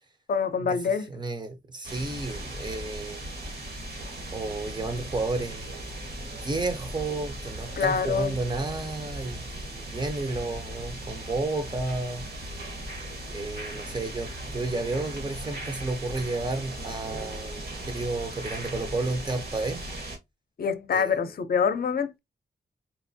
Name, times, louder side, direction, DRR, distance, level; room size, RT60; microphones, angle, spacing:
voice 1, 0.3-1.1 7.8-8.4 20.6-22.2, left 6 dB, 60° left, 0.5 m, -26 dB
voice 2, 1.1-3.2 4.3-5.7 6.2-12.2 13.3-19.8 20.9-21.2, right 2 dB, 25° right, 0.6 m, -32 dB
sound 1, 1.8-20.2, right 1 dB, 60° right, 1.2 m, -38 dB
4.0 x 2.5 x 2.6 m
wide cardioid pair, 170°, 18 cm